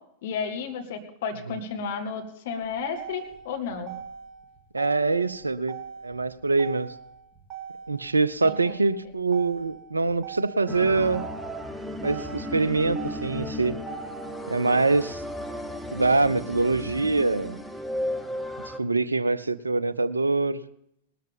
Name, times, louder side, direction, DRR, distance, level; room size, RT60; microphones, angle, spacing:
voice 1, 0.2-3.9 8.4-9.1, left 5 dB, 55° left, 4 dB, 2.0 m, -33 dB
Motor vehicle (road), 2.5-14.5, right 8 dB, 30° right, 2.7 m, -42 dB
voice 2, 4.7-5.8 6.0-6.9 7.9-11.2 12.0-13.8 14.5-15.2 15.9-17.6 18.8-20.6, right 3 dB, 80° right, 17 dB, 0.6 m, -24 dB
sound 1, 10.7-18.8, left 1 dB, ahead, 1.0 m, -35 dB
19.0 x 13.0 x 3.5 m, 0.74 s
figure-of-eight pair, 90°, 0 cm